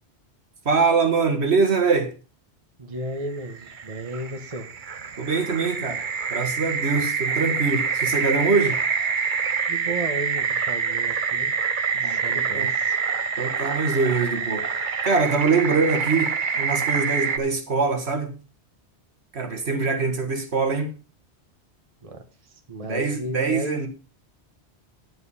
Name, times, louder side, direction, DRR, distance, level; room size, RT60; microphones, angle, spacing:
voice 1, 0.7-2.1 5.2-8.8 11.9-12.7 13.4-18.3 19.3-20.9 22.9-23.9, right 4 dB, 70° right, 2.0 m, -23 dB
voice 2, 2.8-4.7 9.7-11.5 12.0-13.0 22.0-23.9, right 2 dB, 30° right, 1.3 m, -34 dB
sound 1, 3.3-17.4, right 5 dB, 50° right, 1.0 m, -26 dB
10.5 x 7.8 x 5.6 m
omnidirectional pair, 1.1 m